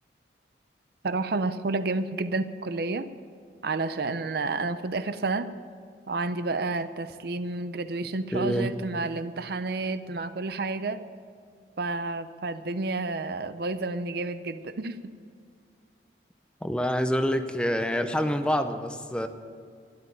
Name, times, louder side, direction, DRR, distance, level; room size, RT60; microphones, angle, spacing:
voice 1, 1.0-3.1 3.6-5.5 6.1-11.0 11.8-15.0, right 3 dB, 60° right, 11 dB, 0.6 m, -30 dB
voice 2, 8.3-8.7 16.6-19.3, equal, 5° left, 8 dB, 0.7 m, -26 dB
12.0 x 10.5 x 8.6 m, 2.2 s
head